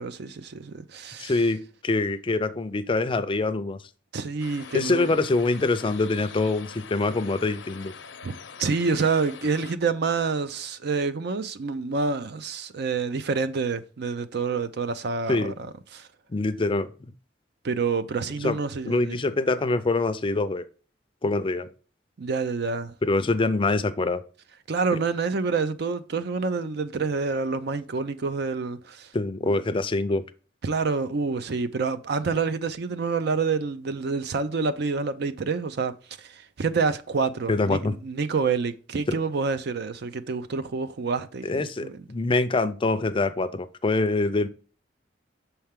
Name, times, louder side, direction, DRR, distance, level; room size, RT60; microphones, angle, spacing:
voice 1, 0.0-1.4 4.1-5.2 8.2-16.1 17.6-19.2 22.2-22.9 24.7-29.1 29.4-29.6 30.6-42.0, right 4 dB, 60° right, 0.5 m, -28 dB
voice 2, 1.2-3.8 4.7-7.9 15.3-15.5 16.3-17.1 18.4-18.6 18.8-20.7 21.2-21.7 23.0-24.2 29.1-30.2 37.5-37.9 39.1-39.2 41.4-44.5, left 3 dB, 30° left, 0.4 m, -25 dB
sound 1, 4.4-9.8, left 6 dB, 75° left, 0.6 m, -44 dB
6.5 x 4.5 x 3.6 m
head